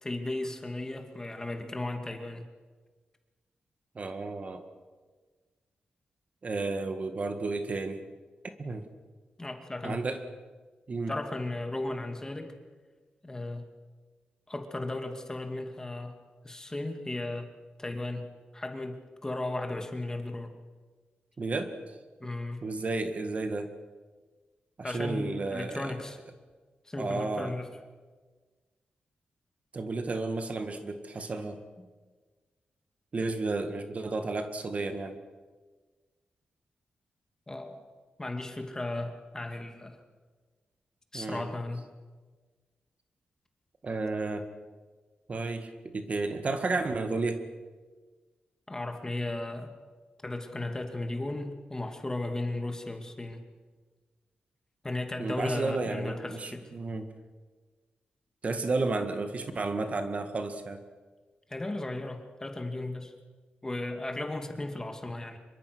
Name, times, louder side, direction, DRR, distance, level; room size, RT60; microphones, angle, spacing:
voice 1, 0.0-2.4 9.4-10.0 11.1-12.5 13.2-13.7 14.5-16.2 16.4-17.5 17.8-20.5 22.2-22.6 24.8-26.2 26.9-27.7 31.8-31.9 37.5-37.8 38.2-40.0 41.1-41.9 48.7-49.7 50.2-53.4 54.8-56.6 61.5-63.1 63.6-65.4, left 2 dB, 20° left, 5 dB, 2.5 m, -35 dB
voice 2, 4.0-4.6 6.4-8.0 8.6-8.9 9.8-10.2 10.9-11.1 21.4-21.7 22.6-23.7 24.8-26.0 27.0-27.6 29.7-31.6 33.1-35.2 41.1-41.5 43.8-44.5 45.3-47.5 55.2-57.1 58.4-60.8, right 3 dB, 45° right, 7 dB, 1.8 m, -32 dB
25.5 x 23.0 x 6.3 m, 1.4 s
wide cardioid pair, 100°, 3 cm